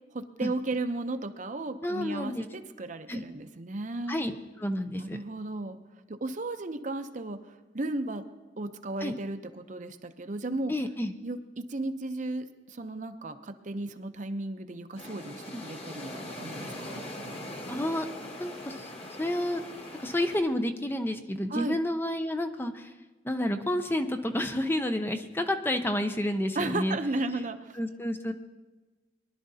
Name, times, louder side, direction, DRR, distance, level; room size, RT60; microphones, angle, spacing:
voice 1, 0.1-4.2 5.0-5.8 6.1-7.4 7.7-8.2 8.6-10.7 11.2-17.0 21.5-21.8 26.5-27.8, right 2 dB, 40° right, 8 dB, 0.7 m, -35 dB
voice 2, 1.8-2.4 3.1-3.3 4.1-5.2 9.0-9.1 10.7-11.1 15.5-15.6 17.7-18.1 18.4-18.9 19.2-19.6 20.0-22.9 23.2-27.0 27.3-27.4 27.8-28.3, left 1 dB, 10° left, 7 dB, 0.5 m, -30 dB
sound 1, 15.0-20.4, left 1 dB, 30° left, 1.5 m, -41 dB
22.0 x 11.5 x 2.8 m, 1.2 s
head